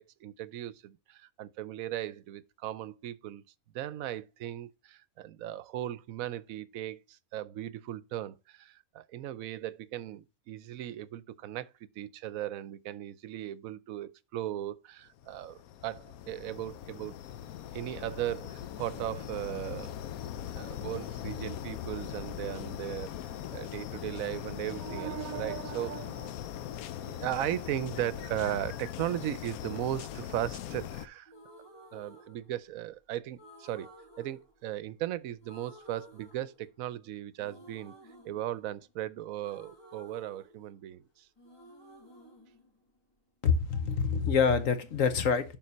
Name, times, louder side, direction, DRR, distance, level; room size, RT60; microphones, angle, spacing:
voice 1, 0.0-3.4 3.7-11.7 12.0-17.2 17.7-19.9 20.5-23.1 23.5-26.3 27.0-31.3 31.9-33.9 34.2-37.9 38.2-41.3, right 13 dB, 75° right, 1.0 m, -37 dB
sound 1, 15.2-31.1, left 10 dB, 80° left, 1.1 m, -40 dB
sound 2, 31.3-32.9 33.4-35.1 35.4-37.0 37.4-41.1 41.4-43.4, right 1 dB, 15° left, 2.0 m, -55 dB
voice 2, 43.4-45.6, left 6 dB, 65° left, 1.3 m, -26 dB
11.0 x 3.9 x 4.1 m
omnidirectional pair, 1.5 m